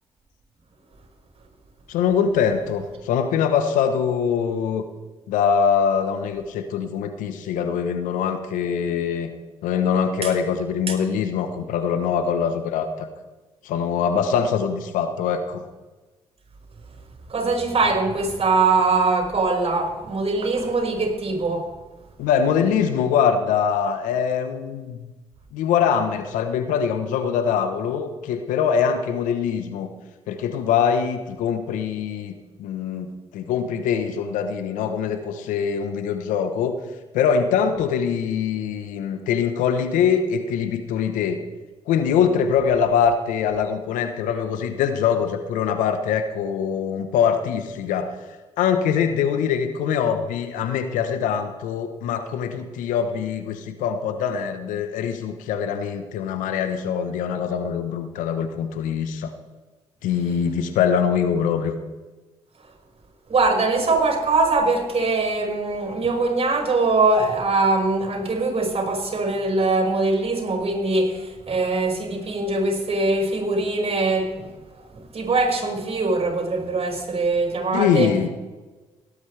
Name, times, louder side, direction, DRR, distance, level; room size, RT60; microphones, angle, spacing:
voice 1, 1.9-4.8 5.3-9.3 9.6-13.1 13.6-15.6 22.2-25.1 25.5-29.9 30.3-32.3 32.6-36.8 37.1-41.4 41.9-48.2 48.6-59.3 60.0-61.7 77.7-78.3, left 7 dB, 75° left, 9 dB, 1.0 m, -23 dB
voice 2, 17.3-21.7 63.3-74.5 74.8-78.1, right 3 dB, 45° right, 2 dB, 5.4 m, -22 dB
18.0 x 12.0 x 3.4 m, 1.2 s
hypercardioid pair, 45°, 13 cm